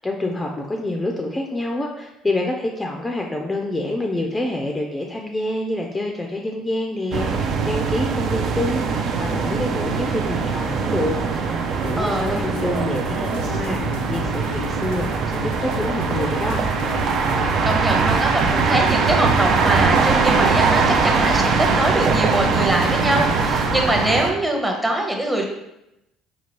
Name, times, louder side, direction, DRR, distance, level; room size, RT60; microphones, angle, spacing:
voice 1, 0.0-16.6, left 1 dB, 15° left, 1 dB, 0.4 m, -27 dB
sound 1, 7.1-24.3, right 5 dB, 60° right, 0.4 m, -21 dB
sound 2, 11.8-23.8, left 5 dB, 85° left, 0.4 m, -34 dB
voice 2, 12.0-12.6 17.6-25.4, right 1 dB, 10° right, 1 dB, 0.7 m, -23 dB
4.4 x 2.3 x 3.0 m, 0.88 s
supercardioid pair, 90°, 0 cm